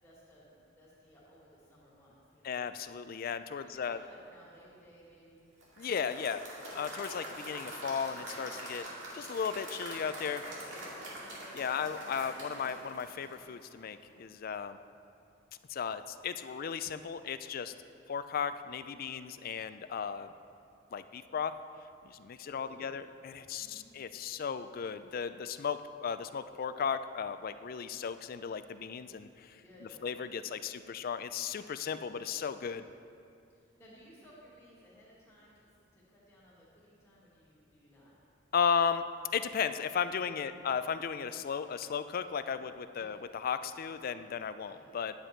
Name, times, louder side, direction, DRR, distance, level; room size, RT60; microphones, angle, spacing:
voice 1, 0.0-2.6 3.6-5.4 10.5-11.8 22.4-23.0 23.5-23.9 29.6-30.1 30.4-31.9 33.5-38.1 40.4-40.7 42.9-43.1 44.6-44.8, equal, 10° left, -9 dB, 2.5 m, -59 dB
voice 2, 2.4-4.0 5.8-6.4 6.7-8.9 9.1-10.4 11.5-14.8 15.7-17.7 18.1-20.3 20.9-21.5 22.0-29.6 30.0-32.8 38.5-39.0 39.3-45.1, left 6 dB, 45° left, 11 dB, 0.3 m, -35 dB
Applause / Crowd, 5.6-13.8, right 1 dB, 65° right, 2.2 m, -44 dB
10.0 x 8.2 x 4.5 m, 2.5 s
head